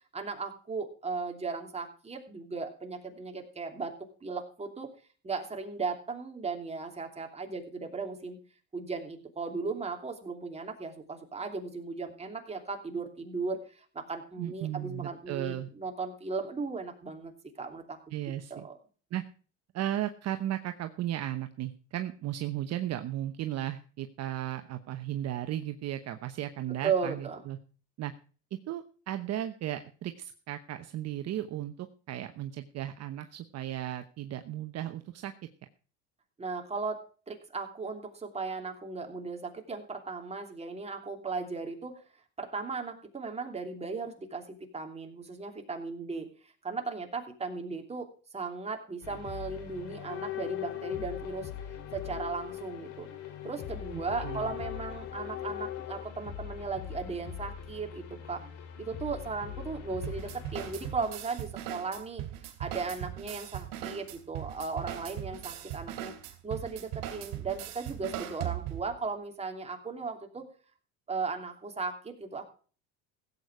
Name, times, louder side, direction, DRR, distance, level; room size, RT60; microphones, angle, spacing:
voice 1, 0.1-3.9 4.2-4.9 5.2-8.4 8.7-18.0 18.5-18.7 26.7-27.4 36.4-37.0 37.3-41.9 42.4-48.1 48.3-51.5 51.9-53.1 53.4-58.4 58.8-70.5 71.1-72.4, right 4 dB, 20° right, 3 dB, 3.0 m, -36 dB
voice 2, 14.4-15.7 18.1-18.7 19.1-19.2 19.7-27.6 28.0-28.1 28.7-35.3 53.9-54.4, right 12 dB, 50° right, 8 dB, 1.0 m, -35 dB
sound 1, 49.0-60.9, left 7 dB, 65° left, 3.2 m, -44 dB
sound 2, 49.6-56.1, left 14 dB, 40° left, 0.9 m, -40 dB
sound 3, 60.0-69.0, right 12 dB, 75° right, 2.7 m, -39 dB
16.0 x 8.4 x 4.8 m, 0.39 s
cardioid pair, 115°, 33 cm